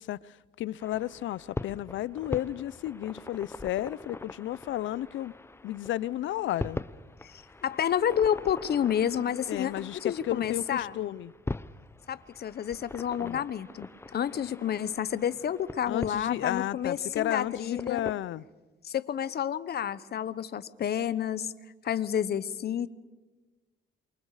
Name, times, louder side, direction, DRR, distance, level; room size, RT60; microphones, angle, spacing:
voice 1, 0.0-5.3 5.6-6.8 9.5-11.3 13.2-13.4 15.9-18.4, left 13 dB, 75° left, 21 dB, 0.6 m, -33 dB
sound 1, 0.8-18.2, left 2 dB, 10° left, 0.6 m, -42 dB
voice 2, 7.2-10.9 12.1-18.0 18.8-21.5 21.8-22.9, left 9 dB, 55° left, 15 dB, 1.0 m, -30 dB
28.0 x 24.5 x 4.9 m, 1.2 s
cardioid pair, 90°, 20 cm